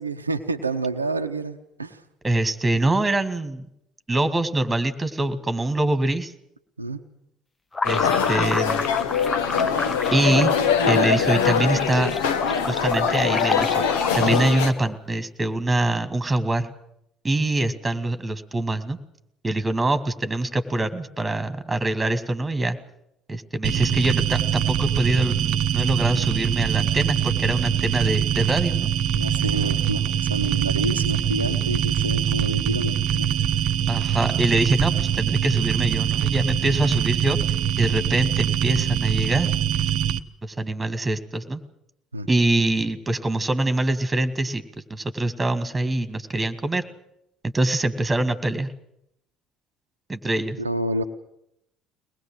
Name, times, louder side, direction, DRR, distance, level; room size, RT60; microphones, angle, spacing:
voice 1, 0.0-2.0 6.8-7.0 29.2-33.7 42.1-42.3 50.6-51.0, right 2 dB, 85° right, 6 dB, 0.8 m, -28 dB
voice 2, 2.2-3.7 4.1-6.3 7.8-8.9 10.1-10.5 10.9-12.2 12.7-13.8 14.2-16.7 17.2-19.0 19.4-22.8 23.3-28.9 33.9-37.4 37.8-39.5 40.4-41.6 42.3-44.6 44.9-46.8 47.4-48.7 50.1-50.6, right 2 dB, 15° right, 10 dB, 2.1 m, -24 dB
sound 1, 7.7-15.0, left 3 dB, 25° left, 1.0 m, -30 dB
sound 2, 7.8-14.7, left 7 dB, 70° left, 1.4 m, -23 dB
sound 3, 23.6-40.2, right 9 dB, 55° right, 0.8 m, -23 dB
23.0 x 20.0 x 7.7 m, 0.79 s
figure-of-eight pair, 55°, 0 cm